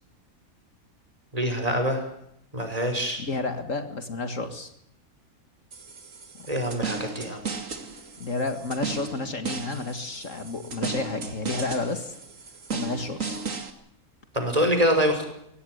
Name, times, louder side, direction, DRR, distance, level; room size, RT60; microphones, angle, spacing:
voice 1, 1.3-2.0 2.5-3.2 6.5-7.4 14.3-15.3, equal, 25° right, 5 dB, 5.7 m, -25 dB
voice 2, 3.2-4.7 6.4-6.5 8.2-12.2 12.7-13.4, left 3 dB, 60° left, 7 dB, 2.2 m, -31 dB
sound 1, 5.7-13.7, right 4 dB, 60° right, 2.6 m, -36 dB
24.0 x 17.5 x 8.0 m, 0.76 s
omnidirectional pair, 1.5 m